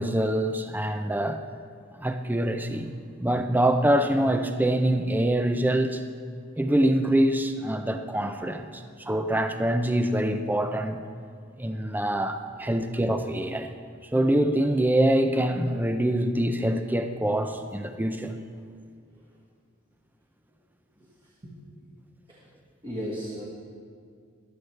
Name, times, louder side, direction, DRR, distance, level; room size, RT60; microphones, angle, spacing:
voice 1, 0.0-1.4 2.0-2.9 3.2-6.0 6.6-11.0 11.6-13.7 14.1-18.4, right 1 dB, 10° right, 7 dB, 0.5 m, -25 dB
voice 2, 21.4-21.9 22.3-22.4 22.8-23.5, equal, 25° right, -5 dB, 1.5 m, -37 dB
14.5 x 11.5 x 3.3 m, 2.1 s
head